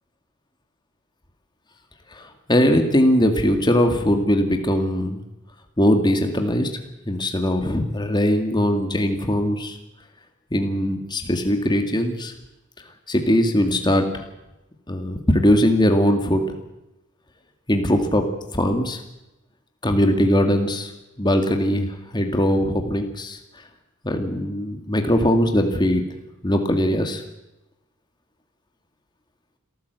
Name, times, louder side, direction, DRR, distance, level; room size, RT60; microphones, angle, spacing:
voice 1, 2.1-5.2 5.8-6.7 7.1-9.8 10.5-12.3 13.1-14.2 14.9-16.4 17.7-18.2 18.5-19.0 19.8-20.9 21.2-23.4 24.0-26.0 26.4-27.2, equal, 20° left, 5 dB, 2.0 m, -20 dB
27.0 x 14.0 x 8.1 m, 0.96 s
head